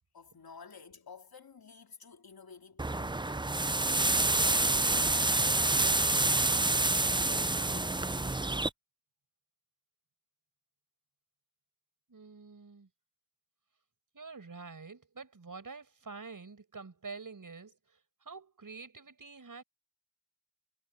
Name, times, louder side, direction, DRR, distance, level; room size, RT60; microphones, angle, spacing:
voice 1, 0.1-5.7 7.6-8.6, left 5 dB, 65° left, 3.8 m, -52 dB
sound 1, 2.8-8.7, right 2 dB, 10° right, 0.6 m, -28 dB
voice 2, 12.1-12.9 14.1-17.8 18.3-19.6, right 4 dB, 55° right, 5.7 m, -47 dB
cardioid pair, 60°, 39 cm